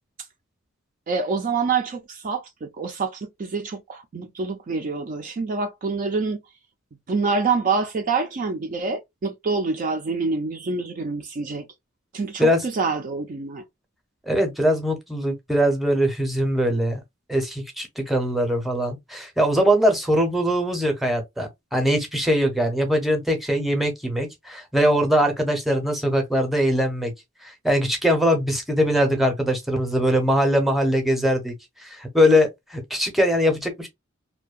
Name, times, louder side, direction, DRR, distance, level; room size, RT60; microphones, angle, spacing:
voice 1, 1.1-6.4 7.1-11.7 12.1-13.6, right 4 dB, 40° right, 0.4 m, -26 dB
voice 2, 14.3-17.0 17.3-27.1 27.4-31.5 31.8-33.9, equal, ahead, 0.7 m, -21 dB
2.6 x 2.1 x 2.3 m
head